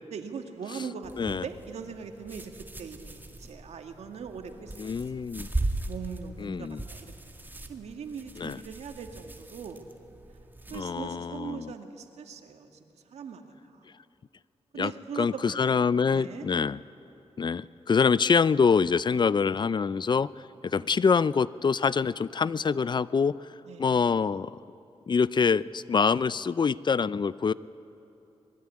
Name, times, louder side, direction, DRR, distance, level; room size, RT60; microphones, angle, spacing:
voice 1, 0.1-4.7 5.1-5.2 5.8-7.1 7.7-9.8 10.7-13.9 14.7-16.5 20.7-20.9 23.7-23.9, right 6 dB, 90° right, 5 dB, 2.1 m, -41 dB
sound 1, 1.0-10.8, right 2 dB, 20° right, 2.2 m, -39 dB
voice 2, 4.8-5.5 6.4-6.8 8.4-8.6 10.7-11.7 14.7-14.9 15.2-16.8 17.4-20.3 20.6-23.3 23.8-24.5 25.1-27.5, left 5 dB, 45° left, 18 dB, 0.5 m, -25 dB
25.5 x 20.5 x 9.8 m, 2.9 s
cardioid pair, 80°, 11 cm